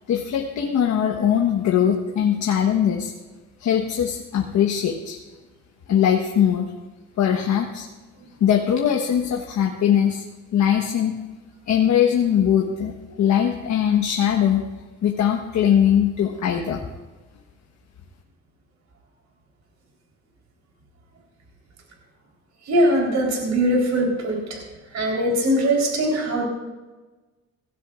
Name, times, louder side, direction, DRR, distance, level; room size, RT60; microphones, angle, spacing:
voice 1, 0.1-3.1 3.6-5.2 5.9-6.7 7.2-7.9 8.4-10.2 10.5-11.2 11.7-14.6 15.0-16.8, left 9 dB, 70° left, 1 dB, 1.3 m, -21 dB
voice 2, 22.7-24.6 24.9-26.4, right 1 dB, 65° right, -1 dB, 3.9 m, -21 dB
18.5 x 16.5 x 2.5 m, 1.2 s
cardioid pair, 90°, 30 cm